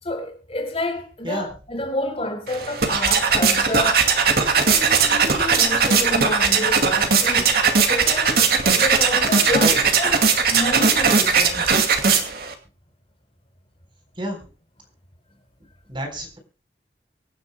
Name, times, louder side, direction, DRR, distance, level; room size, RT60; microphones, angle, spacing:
voice 1, 0.0-4.0 4.4-7.5 7.9-10.2 10.5-11.7, left 1 dB, 35° left, 4.1 m, -29 dB
sound 1, 2.5-12.5, right 5 dB, 60° right, 2.2 m, -19 dB
voice 2, 9.5-9.8 14.2-14.5 15.9-16.4, equal, 30° right, 4.0 m, -29 dB
25.0 x 10.0 x 2.2 m
head